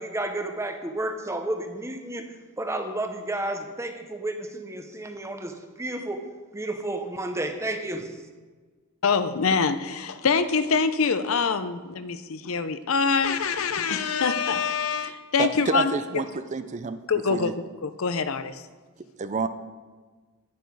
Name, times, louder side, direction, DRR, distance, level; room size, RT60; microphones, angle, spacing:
voice 1, 0.0-8.2, right 1 dB, 15° right, 6 dB, 0.8 m, -32 dB
voice 2, 9.0-16.2 17.1-17.5 17.8-18.6, left 5 dB, 75° left, 11 dB, 0.6 m, -25 dB
voice 3, 15.4-17.0 17.3-17.5 19.2-19.5, right 4 dB, 35° right, 11 dB, 0.5 m, -28 dB
10.5 x 9.3 x 4.7 m, 1.4 s
head